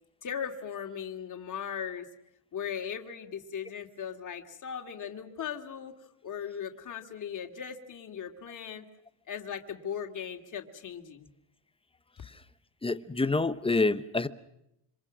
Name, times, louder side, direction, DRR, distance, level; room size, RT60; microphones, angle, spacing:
voice 1, 0.2-2.1 2.5-8.9 9.3-11.3, left 8 dB, 35° left, 2.4 m, -38 dB
voice 2, 12.8-14.3, left 3 dB, 10° left, 0.9 m, -27 dB
27.0 x 26.0 x 6.2 m
cardioid pair, 145°, 50 cm